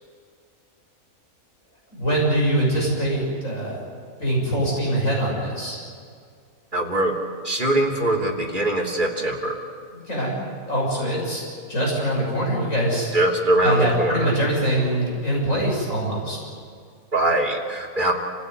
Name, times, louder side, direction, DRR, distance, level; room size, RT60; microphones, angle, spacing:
voice 1, 1.9-3.8 4.2-5.8 10.1-11.4 11.7-13.1 13.6-16.4, right 1 dB, 60° left, -3 dB, 7.6 m, -23 dB
voice 2, 6.7-7.2 7.4-9.6 13.1-14.3 17.1-18.1, right 1 dB, 35° right, -1 dB, 3.2 m, -22 dB
27.5 x 16.0 x 9.8 m, 2.2 s
omnidirectional pair, 1.5 m